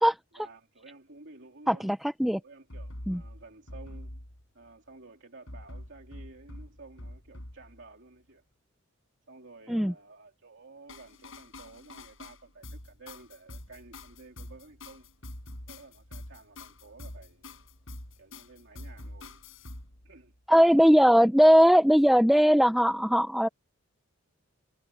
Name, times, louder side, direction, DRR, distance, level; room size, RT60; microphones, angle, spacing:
voice 1, 0.3-1.9 2.4-4.2 4.5-8.4 9.3-15.1 15.7-17.7 18.2-19.4 20.0-20.3, right 3 dB, 55° right, 2.8 m, -52 dB
voice 2, 1.7-2.4 3.1-3.2 9.7-9.9 20.5-23.5, equal, ahead, 0.3 m, -20 dB
sound 1, 2.7-4.7 5.5-7.9 10.9-20.4, left 1 dB, 65° left, 5.3 m, -45 dB
head